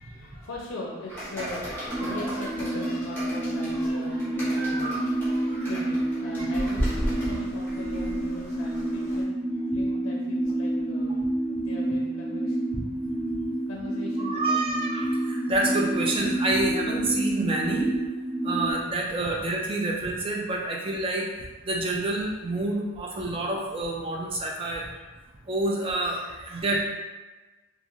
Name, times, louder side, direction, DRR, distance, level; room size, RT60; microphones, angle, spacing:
voice 1, 0.0-1.7 2.0-12.7 13.7-14.6, left 2 dB, 85° left, -3 dB, 0.4 m, -41 dB
sound 1, 1.1-9.2, equal, 10° left, 1.0 m, -35 dB
sound 2, 1.9-18.7, right 1 dB, 45° right, 1.3 m, -29 dB
voice 2, 4.6-5.0 12.7-12.8 14.2-18.0 18.4-24.9 25.5-26.9, right 2 dB, 25° right, -1 dB, 0.3 m, -28 dB
2.4 x 2.4 x 2.9 m, 1.2 s
head